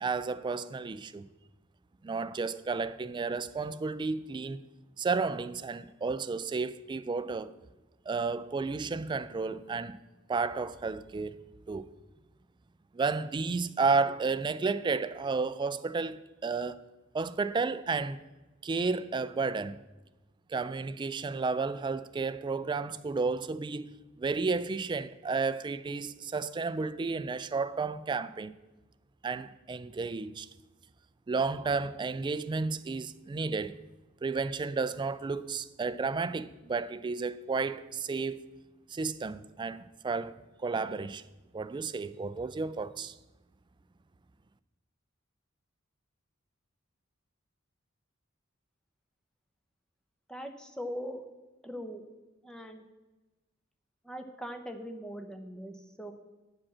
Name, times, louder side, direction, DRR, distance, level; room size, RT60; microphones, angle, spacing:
voice 1, 0.0-1.3 2.0-4.6 5.0-7.5 8.1-10.0 10.3-11.9 12.9-16.8 17.1-18.2 18.6-19.8 20.5-28.5 29.2-30.5 31.3-33.8 34.2-38.4 38.9-41.2 41.5-43.1, right 4 dB, 25° right, 0.3 m, -32 dB
voice 2, 50.3-51.2 51.6-52.0 52.4-52.8 54.1-56.1, equal, 5° left, 0.7 m, -41 dB
8.4 x 5.1 x 7.3 m
head